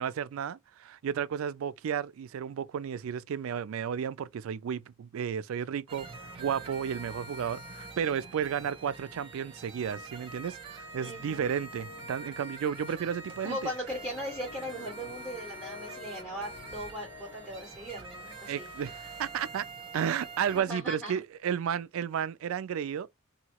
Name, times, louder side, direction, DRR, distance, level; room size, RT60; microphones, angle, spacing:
voice 1, 0.0-6.1 6.4-13.7 18.5-19.7 19.9-23.1, right 8 dB, 75° right, 0.3 m, -33 dB
sound 1, 5.9-20.6, right 3 dB, 25° right, 0.8 m, -45 dB
voice 2, 11.0-11.5 13.4-18.7 20.5-21.2, equal, 10° left, 1.6 m, -38 dB
sound 2, 11.8-12.6 12.9-13.2 13.9-19.3, left 7 dB, 50° left, 0.4 m, -51 dB
2.9 x 2.7 x 2.8 m
head